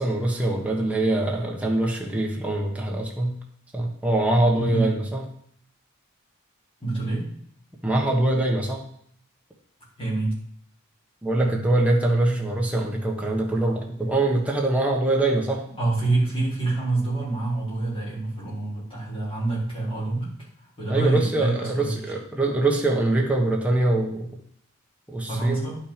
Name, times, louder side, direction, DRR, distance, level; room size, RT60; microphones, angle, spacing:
voice 1, 0.0-3.4 3.7-5.2 7.8-8.8 11.2-15.6 20.9-24.3 25.1-25.7, right 2 dB, 5° right, -1 dB, 1.3 m, -23 dB
voice 2, 4.6-4.9 6.8-7.3 10.0-10.4 15.8-20.3 20.8-21.9 25.3-25.8, right 2 dB, 25° left, -7 dB, 4.8 m, -26 dB
10.5 x 6.1 x 5.1 m, 0.64 s
head